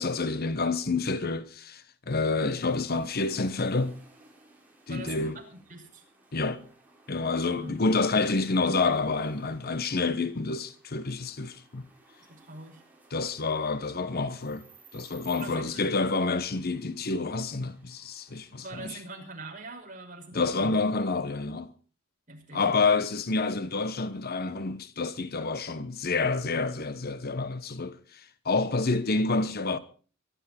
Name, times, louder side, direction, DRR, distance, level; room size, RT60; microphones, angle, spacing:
voice 1, 0.0-4.0 4.9-5.4 6.3-6.7 7.1-11.9 13.1-14.7 14.9-19.0 20.3-21.7 22.5-29.8, left 3 dB, 50° left, 1.1 m, -28 dB
sound 1, 2.4-19.3, right 2 dB, 10° right, 5.0 m, -59 dB
voice 2, 4.9-6.0 7.4-7.8 12.3-12.8 15.3-15.9 18.4-20.8 22.3-22.6, right 2 dB, 40° right, 5.8 m, -43 dB
24.0 x 12.0 x 4.4 m
head